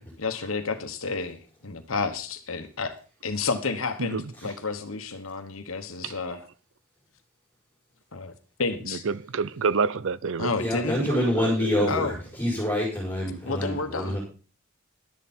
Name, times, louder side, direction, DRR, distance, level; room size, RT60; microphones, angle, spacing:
voice 1, 0.0-1.4 1.6-2.9 3.2-6.5 8.1-8.3 8.6-9.0 10.4-11.0 11.9-12.1 13.5-14.2, left 4 dB, 70° left, 1.3 m, -30 dB
voice 2, 9.1-10.5 11.0-11.9, right 5 dB, 65° right, 0.6 m, -28 dB
voice 3, 10.6-14.2, left 1 dB, 10° left, 5.5 m, -26 dB
12.5 x 11.0 x 4.3 m
head